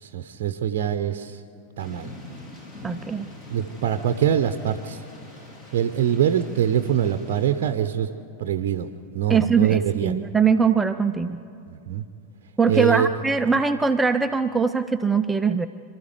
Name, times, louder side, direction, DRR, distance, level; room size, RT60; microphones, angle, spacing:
voice 1, 0.0-1.4 1.8-2.1 3.5-5.0 5.7-8.1 8.4-8.9 9.1-10.2 11.7-12.0 12.7-13.1, right 9 dB, 50° right, 9 dB, 0.8 m, -24 dB
Thunder / Rain, 1.8-7.7, left 1 dB, 35° left, 3.7 m, -44 dB
voice 2, 2.8-3.3 9.3-11.4 12.6-15.7, right 5 dB, 10° right, 9 dB, 0.5 m, -21 dB
27.5 x 13.0 x 8.2 m, 2.5 s
figure-of-eight pair, 90°, 0 cm